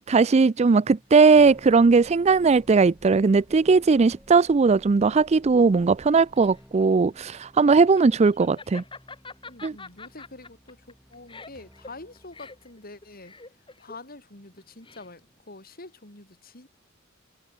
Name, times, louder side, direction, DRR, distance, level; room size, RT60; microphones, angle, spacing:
voice 1, 0.0-8.8 9.6-9.8, right 4 dB, 35° right, 0.4 m, -18 dB
sound 1, 0.6-13.9, equal, 5° right, 6.4 m, -55 dB
Laughter, 6.0-15.4, left 3 dB, 25° left, 7.9 m, -46 dB
voice 2, 9.4-13.4 13.8-16.7, left 2 dB, 50° left, 6.6 m, -46 dB
head